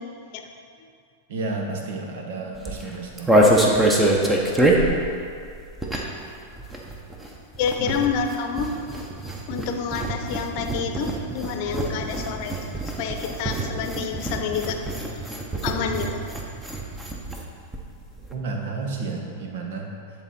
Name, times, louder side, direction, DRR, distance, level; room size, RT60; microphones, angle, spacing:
voice 1, 1.3-3.3 7.8-8.0 18.3-19.9, right 3 dB, 65° right, 1 dB, 1.2 m, -31 dB
sound 1, 2.6-6.3 6.5-17.5 17.7-17.8 18.0-18.4, right 1 dB, 10° right, 1.0 m, -24 dB
voice 2, 7.6-8.7 9.5-12.6 13.0-14.8 15.6-16.2, left 6 dB, 55° left, 5 dB, 0.7 m, -28 dB
10.0 x 4.0 x 4.4 m, 2.3 s
hypercardioid pair, 105°, 0 cm